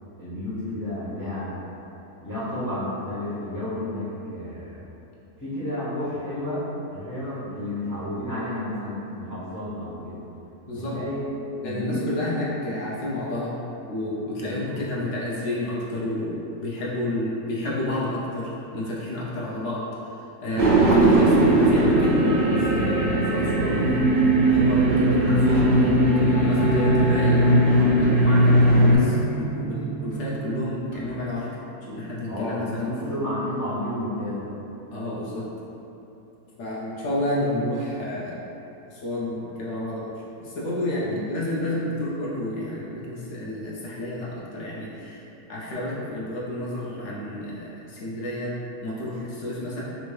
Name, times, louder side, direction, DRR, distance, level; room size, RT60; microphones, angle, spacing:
voice 1, 0.2-1.6 2.2-4.9 5.4-10.2 10.6-11.3 11.6-12.4 14.4-14.8 32.2-34.5 41.0-41.2, left 1 dB, 25° left, -11 dB, 0.4 m, -31 dB
voice 2, 10.7-11.0 11.6-13.6 13.9-20.1 20.4-31.5 31.8-33.2 34.9-35.5 36.6-38.4 38.9-40.1 40.4-49.8, left 1 dB, 65° left, -6 dB, 0.8 m, -30 dB
sound 1, 20.6-29.0, right 1 dB, 55° right, 0.6 m, -19 dB
sound 2, 26.9-31.4, right 4 dB, 90° right, 1.3 m, -34 dB
3.5 x 2.6 x 3.1 m, 2.9 s
omnidirectional pair, 1.6 m